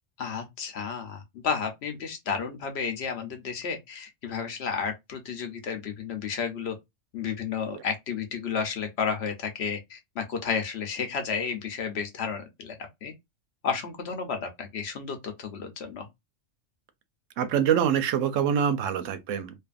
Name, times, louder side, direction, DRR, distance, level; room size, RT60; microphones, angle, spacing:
voice 1, 0.2-6.8 7.1-12.7 13.0-13.1 13.6-16.1, left 6 dB, 60° left, 0.9 m, -32 dB
voice 2, 17.4-19.6, right 8 dB, 85° right, 0.9 m, -25 dB
2.5 x 2.5 x 2.4 m
omnidirectional pair, 1.3 m